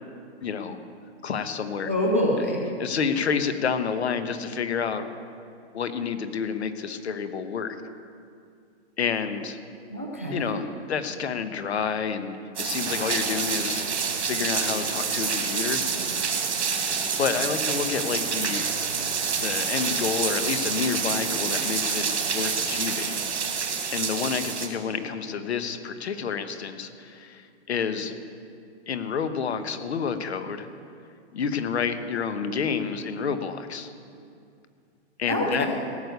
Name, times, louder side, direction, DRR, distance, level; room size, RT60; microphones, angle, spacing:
voice 1, 0.4-0.8 1.2-1.9 2.8-5.0 5.7-7.8 9.0-9.6 10.3-13.8 14.3-16.4 17.2-18.6 19.4-22.0 22.3-23.1 23.9-28.1 28.9-30.7 31.3-33.9 35.2-35.7, left 6 dB, 70° left, 9 dB, 1.2 m, -29 dB
voice 2, 1.9-2.6 9.9-10.6 35.3-35.7, left 1 dB, 15° right, 0 dB, 0.4 m, -25 dB
sound 1, 12.6-24.7, right 6 dB, 90° right, 2.5 m, -27 dB
17.0 x 6.7 x 8.2 m, 2.4 s
hypercardioid pair, 180°, 34 cm